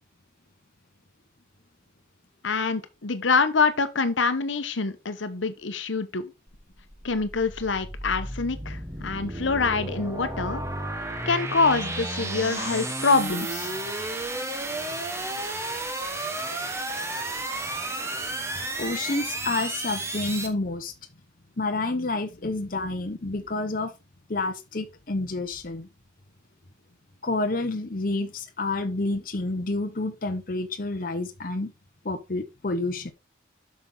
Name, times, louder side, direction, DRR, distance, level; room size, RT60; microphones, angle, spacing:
voice 1, 2.4-6.3 7.0-10.6 11.3-13.7, left 4 dB, 80° left, 0.9 m, -25 dB
sound 1, 6.5-20.5, right 2 dB, 15° right, 1.2 m, -32 dB
voice 2, 18.8-20.9 21.6-23.9 24.3-25.9 27.2-31.7 32.0-33.1, left 2 dB, 45° left, 0.8 m, -29 dB
8.0 x 6.2 x 3.8 m
head